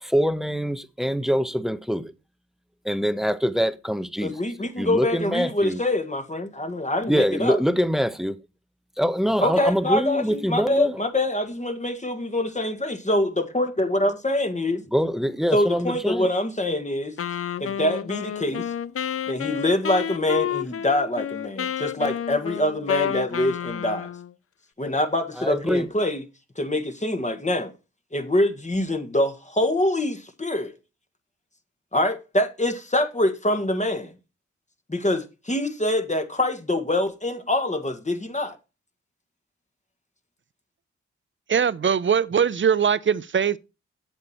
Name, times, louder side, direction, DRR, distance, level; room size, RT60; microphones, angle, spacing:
voice 1, 0.0-2.1 2.8-5.8 7.1-8.4 9.0-11.0 14.9-16.3 25.4-25.9, equal, ahead, 1.0 m, -24 dB
voice 2, 4.2-7.6 9.4-14.8 15.5-17.1 17.6-18.7 19.3-24.1 24.8-26.2 26.6-27.7 28.1-30.8 31.9-34.1 34.9-38.6, left 1 dB, 25° left, 1.8 m, -25 dB
Wind instrument woodwind instrument, 17.2-24.3, left 9 dB, 50° left, 0.6 m, -30 dB
voice 3, 41.5-43.6, right 7 dB, 40° right, 0.7 m, -21 dB
8.0 x 7.5 x 4.4 m
supercardioid pair, 40°, 29 cm